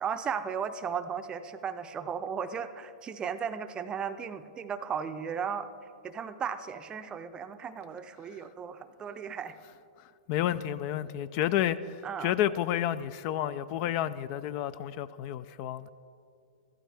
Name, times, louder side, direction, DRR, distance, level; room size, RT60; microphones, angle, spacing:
voice 1, 0.0-5.7 6.0-9.6 12.0-12.3, right 7 dB, 20° right, 10 dB, 0.6 m, -35 dB
voice 2, 10.3-15.9, left 11 dB, 45° left, 15 dB, 0.4 m, -30 dB
14.5 x 12.5 x 3.4 m, 2.4 s
hypercardioid pair, 110°, 4 cm